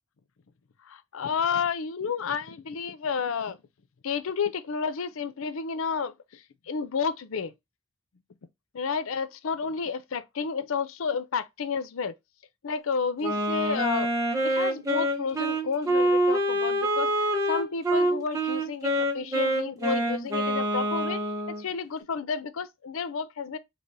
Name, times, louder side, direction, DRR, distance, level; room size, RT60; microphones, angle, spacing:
voice 1, 0.9-3.6 4.0-6.1 6.7-7.5 8.7-12.1 12.6-14.1 14.4-17.1 17.5-23.6, left 5 dB, 75° left, 0.5 m, -31 dB
Wind instrument woodwind instrument, 13.2-21.6, right 1 dB, 15° right, 0.8 m, -26 dB
3.7 x 3.3 x 2.6 m
head